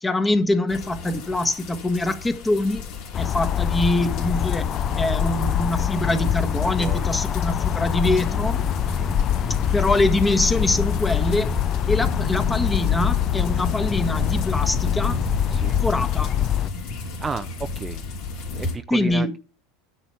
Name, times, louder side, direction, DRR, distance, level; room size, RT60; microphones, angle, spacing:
voice 1, 0.0-2.8 3.2-8.6 9.7-11.5 11.9-15.2 15.8-16.4 18.9-19.3, left 1 dB, 15° left, 1.3 m, -24 dB
sound 1, 0.7-18.8, left 3 dB, 60° left, 3.0 m, -32 dB
sound 2, 3.1-16.7, left 10 dB, 40° left, 0.4 m, -24 dB
voice 2, 6.8-7.1 9.0-9.1 15.5-15.8 17.2-17.5 17.8-18.0 18.5-19.4, right 5 dB, 25° right, 0.5 m, -32 dB
9.9 x 4.2 x 6.8 m
hypercardioid pair, 90°, 0 cm